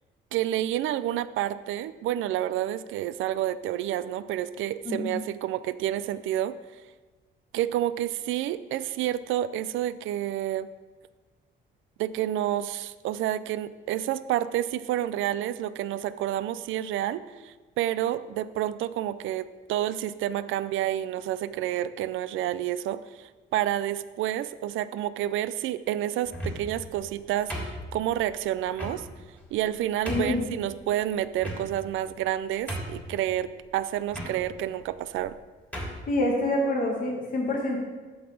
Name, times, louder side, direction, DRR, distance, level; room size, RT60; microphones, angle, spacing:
voice 1, 0.3-6.6 7.5-10.7 12.0-29.1 29.5-35.3, right 12 dB, 80° right, 15 dB, 0.4 m, -29 dB
sound 1, 26.2-26.8 27.5-28.2 28.8-29.0 29.6-29.7 30.0-30.4 31.4-31.9 32.3-32.4 32.7-33.1 34.1-34.3 35.2-35.3 35.7-36.0, equal, 5° left, 2.7 m, -34 dB
voice 2, 30.1-30.4 36.1-37.8, left 1 dB, 45° left, -2 dB, 1.6 m, -26 dB
8.4 x 4.0 x 7.1 m, 1.3 s
cardioid pair, 90°, 20 cm